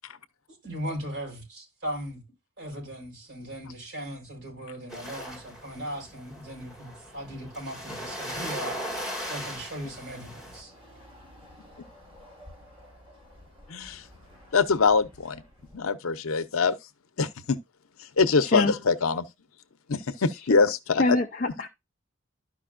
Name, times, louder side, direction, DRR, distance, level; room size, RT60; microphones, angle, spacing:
voice 1, 0.5-2.2 2.6-9.0 9.3-10.7, equal, 50° right, 5.5 m, -38 dB
sound 1, 4.9-10.6, equal, ahead, 2.0 m, -38 dB
Chatter / Car passing by / Motorcycle, 10.0-15.9, left 1 dB, 25° right, 5.2 m, -52 dB
voice 2, 13.7-14.0 14.5-15.4 15.7-16.7 17.2-17.6 18.2-19.3 19.9-21.0 21.4-21.5, left 4 dB, 85° left, 0.7 m, -24 dB
voice 3, 18.4-18.7 21.0-21.7, left 2 dB, 40° left, 0.5 m, -24 dB
12.5 x 5.3 x 2.5 m
head